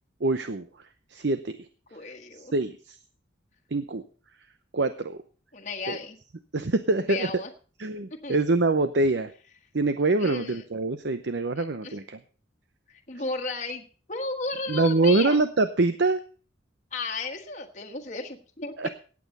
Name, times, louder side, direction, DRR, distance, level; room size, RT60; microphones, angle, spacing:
voice 1, 0.2-0.7 1.1-1.6 2.5-2.8 3.7-4.0 4.7-5.2 5.9-6.0 6.5-7.3 7.8-9.3 9.7-12.2 14.7-16.2 18.8-18.9, right 3 dB, 60° right, 10 dB, 0.7 m, -24 dB
voice 2, 1.9-2.5 5.5-6.2 7.0-7.5 8.2-8.4 10.2-10.6 11.6-12.0 12.9-15.4 16.9-18.9, left 3 dB, 35° left, 2 dB, 1.4 m, -34 dB
17.5 x 8.5 x 5.4 m, 0.40 s
head